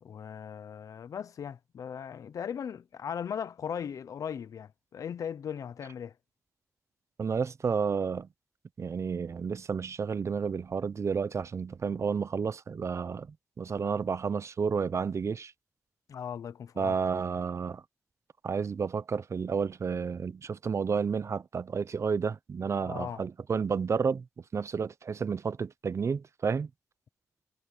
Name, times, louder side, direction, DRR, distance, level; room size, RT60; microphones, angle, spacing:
voice 1, 0.0-6.1 16.1-16.9 22.8-23.2, left 8 dB, 80° left, 0.8 m, -38 dB
voice 2, 7.2-8.3 8.8-15.5 16.8-17.8 18.4-24.2 24.5-26.7, right 5 dB, 60° right, 0.7 m, -31 dB
cardioid pair, 65°, 6 cm